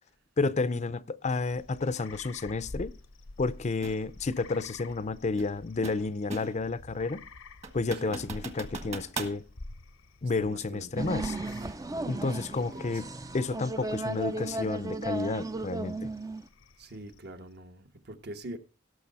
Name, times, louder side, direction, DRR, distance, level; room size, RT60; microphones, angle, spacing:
voice 1, 0.4-2.9 3.4-7.2 7.7-9.4 10.2-11.4 12.1-13.1 13.3-16.1, left 3 dB, 35° left, 0.5 m, -31 dB
sound 1, 1.3-17.5, left 2 dB, 75° left, 0.8 m, -49 dB
sound 2, 3.8-4.0 5.4-6.7 7.1-7.2 7.6-9.4, right 3 dB, 35° right, 1.4 m, -39 dB
voice 2, 10.4-10.9 11.6-13.0 16.8-18.6, right 1 dB, 55° right, 1.2 m, -45 dB
sound 3, 11.0-16.4, right 2 dB, 15° right, 0.4 m, -35 dB
18.0 x 6.4 x 4.1 m
head